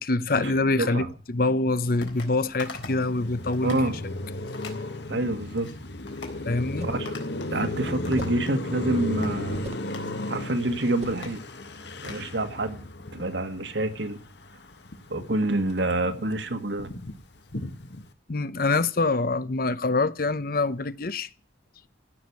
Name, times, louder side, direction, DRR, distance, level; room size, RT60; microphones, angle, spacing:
voice 1, 0.0-3.9 6.5-6.9 18.3-21.3, left 3 dB, 50° left, 0.8 m, -25 dB
voice 2, 0.8-1.1 3.6-4.0 5.1-5.7 6.8-7.1 7.5-9.6 10.3-11.4 12.0-12.8 13.1-14.2 15.1-16.9, right 2 dB, 75° right, 1.9 m, -27 dB
sound 1, 2.0-2.3 2.6-3.1 3.4-3.9 4.5-4.8 5.3-5.7 6.1-6.4 7.1-7.6 7.8-8.8 9.2-9.4 9.9-10.2 10.6-12.2, left 3 dB, 85° left, 3.9 m, -42 dB
Car passing by, 2.8-15.3 15.6-18.1, left 2 dB, 70° left, 1.7 m, -35 dB
sound 2, 6.6-7.1 8.2-8.5 9.5-10.0 11.0-11.3, right 2 dB, 35° right, 0.7 m, -41 dB
16.0 x 6.5 x 9.5 m
head